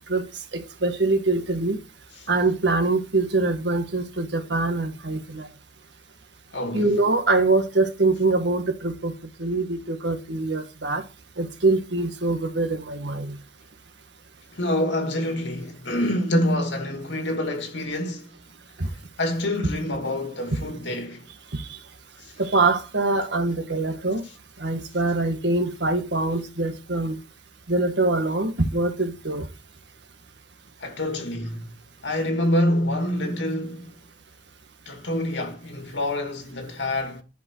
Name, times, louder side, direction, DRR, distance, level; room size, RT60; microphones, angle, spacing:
voice 1, 0.5-1.8 2.3-5.5 6.7-9.1 9.4-11.0 11.4-13.4 18.8-18.9 21.5-21.7 22.4-24.2 24.6-27.2 27.7-29.5, right 2 dB, 70° right, 1.7 m, -24 dB
voice 2, 6.5-6.9 14.5-18.3 19.2-21.3 30.8-31.7 32.0-33.9 34.9-37.2, left 1 dB, 75° left, 2.4 m, -26 dB
11.0 x 5.5 x 4.7 m
head